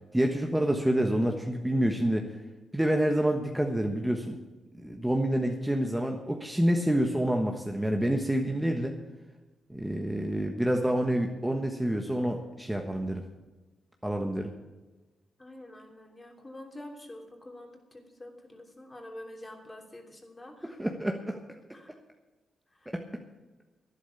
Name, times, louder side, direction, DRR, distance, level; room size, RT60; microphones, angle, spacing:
voice 1, 0.1-2.3 2.7-4.4 4.8-9.0 9.7-13.2 14.0-14.5 20.6-21.4 22.9-23.0, right 1 dB, 5° right, 3 dB, 1.3 m, -28 dB
voice 2, 15.4-20.8 21.7-22.0 22.7-22.9, left 1 dB, 20° left, 3 dB, 3.0 m, -47 dB
12.0 x 10.5 x 7.1 m, 1.2 s
cardioid pair, 75°, 0 cm